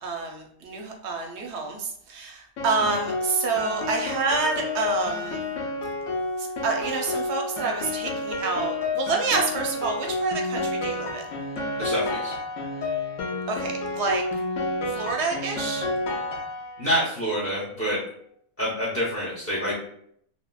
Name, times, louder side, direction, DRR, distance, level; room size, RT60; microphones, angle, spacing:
voice 1, 0.0-5.4 6.4-11.3 13.5-14.2 14.9-15.9, right 4 dB, 65° right, 2 dB, 0.7 m, -28 dB
Piano, 2.6-17.0, left 2 dB, 75° left, 0.9 m, -30 dB
voice 2, 11.8-12.4 16.8-18.0 18.6-19.7, equal, 20° left, -8 dB, 0.4 m, -27 dB
3.5 x 2.1 x 2.2 m, 0.67 s
omnidirectional pair, 1.4 m